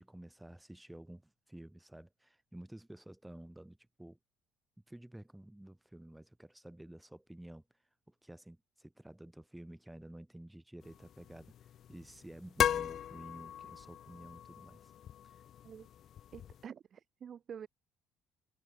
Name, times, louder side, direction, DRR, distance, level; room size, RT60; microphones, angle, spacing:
voice 1, 0.0-4.2 4.9-7.6 8.1-14.9 15.2-15.4, right 1 dB, 5° right, 1.9 m, -52 dB
sound 1, 10.8-16.6, left 10 dB, 45° left, 1.3 m, -38 dB
voice 2, 16.3-17.7, right 8 dB, 35° right, 5.0 m, -48 dB
cardioid pair, 150°, 0 cm